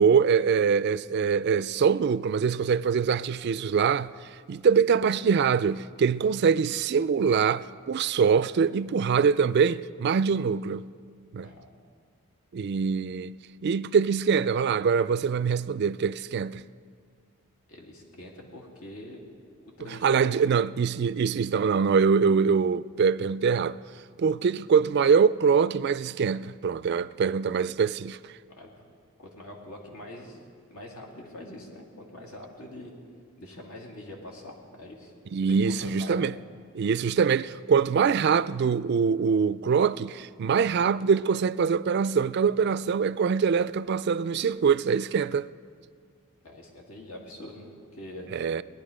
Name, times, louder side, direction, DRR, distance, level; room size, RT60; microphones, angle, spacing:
voice 1, 0.0-4.1 4.5-10.8 11.3-11.5 12.5-13.4 13.6-16.6 19.9-23.8 24.2-28.2 35.3-36.4 36.7-45.5 48.3-48.6, right 6 dB, 50° right, 0.3 m, -24 dB
voice 2, 17.7-19.2 19.6-20.4 28.5-28.7 29.2-32.9 33.4-35.1 35.4-36.3 46.4-48.3, left 1 dB, 85° left, 2.4 m, -44 dB
19.0 x 11.0 x 5.0 m
head